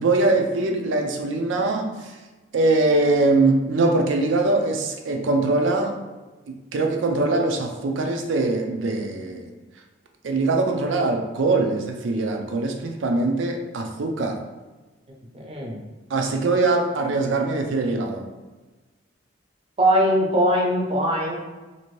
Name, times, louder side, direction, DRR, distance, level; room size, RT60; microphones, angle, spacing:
voice 1, 0.0-2.0 2.5-6.0 6.5-9.5 10.2-14.4 16.1-18.3, right 2 dB, 85° right, 3 dB, 0.5 m, -22 dB
voice 2, 15.3-15.8 19.8-21.3, equal, 30° right, -2 dB, 0.6 m, -21 dB
2.7 x 2.5 x 3.0 m, 1.2 s
head